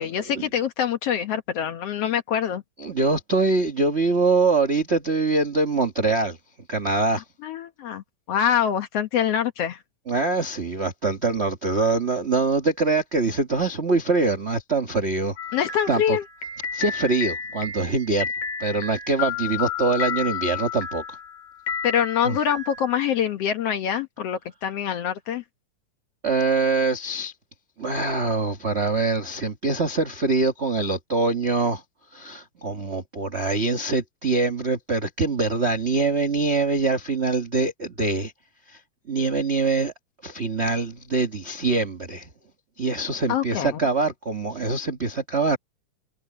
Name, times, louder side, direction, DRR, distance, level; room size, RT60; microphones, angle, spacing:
voice 1, 0.0-2.6 7.4-8.0 8.3-9.8 15.5-16.2 21.8-25.4 43.3-43.7, left 9 dB, 65° left, 1.9 m, -25 dB
voice 2, 2.8-6.4 6.7-7.2 10.1-15.4 15.9-16.2 16.7-18.3 18.6-21.0 22.2-22.4 26.2-27.3 27.8-31.8 32.1-38.3 38.7-38.8 39.1-39.9 40.2-42.3 42.8-45.6, right 3 dB, 40° right, 0.9 m, -24 dB
sound 1, 15.4-23.3, left 7 dB, 80° left, 4.4 m, -32 dB
omnidirectional pair, 3.4 m